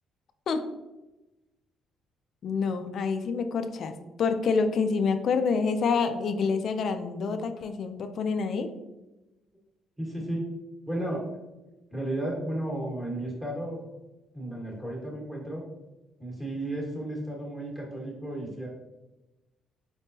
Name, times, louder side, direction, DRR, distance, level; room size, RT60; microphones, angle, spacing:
voice 1, 2.4-8.7, left 5 dB, 55° left, 8 dB, 0.3 m, -27 dB
voice 2, 10.0-10.6 10.8-11.2 11.9-13.8 14.3-15.6 16.2-18.7, right 1 dB, 10° right, -3 dB, 1.5 m, -33 dB
4.9 x 3.6 x 2.7 m, 1.0 s
cardioid pair, 125°, 0 cm